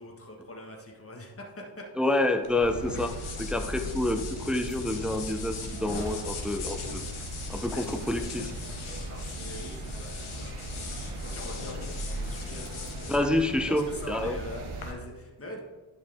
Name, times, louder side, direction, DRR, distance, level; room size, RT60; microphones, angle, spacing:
voice 1, 0.0-2.3 7.7-7.8 9.0-13.2 13.7-15.6, left 1 dB, 30° left, 0 dB, 1.6 m, -43 dB
voice 2, 2.0-3.1 3.4-7.0 7.5-8.5 13.1-14.4, left 1 dB, ahead, 7 dB, 0.5 m, -28 dB
sound 1, 2.4-14.9, left 3 dB, 85° left, 1.2 m, -40 dB
sound 2, 2.5-14.9, right 2 dB, 90° right, 1.1 m, -39 dB
10.5 x 4.8 x 3.6 m, 1.2 s
cardioid pair, 55°, 48 cm